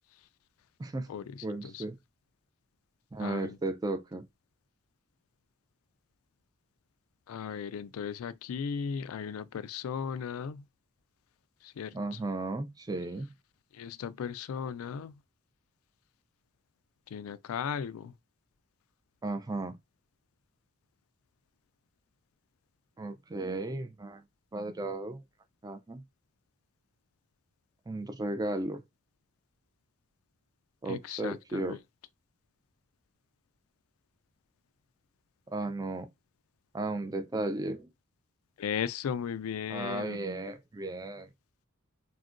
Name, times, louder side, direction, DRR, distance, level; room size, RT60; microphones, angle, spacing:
voice 1, 1.4-2.0 3.1-4.2 11.9-13.3 19.2-19.8 23.0-24.2 24.5-25.2 25.6-26.0 27.9-28.8 30.8-31.8 35.5-36.1 36.7-37.9 39.7-41.3, right 2 dB, 20° right, 0.4 m, -35 dB
voice 2, 3.2-3.6 7.3-10.6 11.8-12.2 13.8-15.1 17.1-18.1 30.9-31.8 38.6-40.2, left 7 dB, 75° left, 0.3 m, -36 dB
3.6 x 2.2 x 2.5 m
head